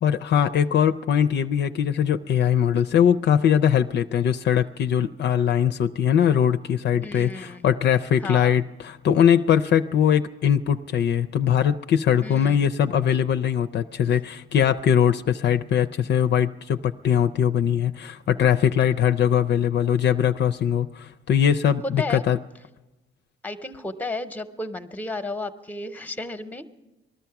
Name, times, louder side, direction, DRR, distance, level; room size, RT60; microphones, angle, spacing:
voice 1, 0.0-22.4, left 9 dB, 60° left, 8 dB, 0.5 m, -21 dB
voice 2, 7.0-7.6 8.2-8.6 12.2-12.7 21.8-22.2 23.4-26.7, left 2 dB, 10° left, 9 dB, 0.8 m, -33 dB
19.5 x 12.5 x 5.8 m, 1.1 s
cardioid pair, 90°, 20 cm